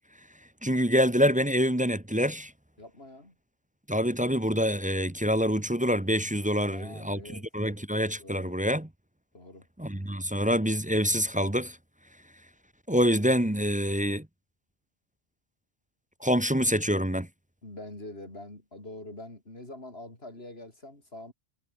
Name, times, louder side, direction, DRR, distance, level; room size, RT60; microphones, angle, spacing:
voice 1, 0.6-2.5 3.9-8.9 9.8-11.8 12.9-14.3 16.2-17.3, equal, 10° right, 0.9 m, -26 dB
voice 2, 2.8-3.3 6.6-7.5 8.2-8.5 9.3-9.7 17.6-21.3, left 1 dB, 65° left, 6.2 m, -44 dB
omnidirectional pair, 1.1 m